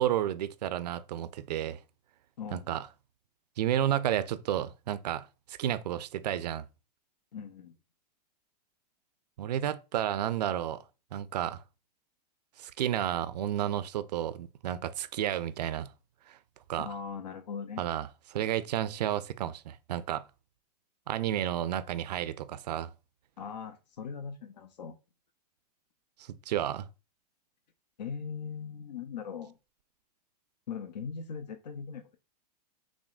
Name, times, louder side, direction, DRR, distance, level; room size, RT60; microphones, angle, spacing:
voice 1, 0.0-1.8 2.5-2.9 3.6-6.7 9.4-10.8 11.1-11.6 12.6-15.9 16.3-16.4 16.7-16.9 17.8-20.2 21.1-22.9 26.2-26.9, right 11 dB, 80° right, 0.4 m, -31 dB
voice 2, 7.3-7.7 16.8-17.8 23.4-25.0 28.0-29.6 30.7-32.2, left 6 dB, 90° left, 0.5 m, -40 dB
6.1 x 2.1 x 2.3 m
hypercardioid pair, 120°, 21 cm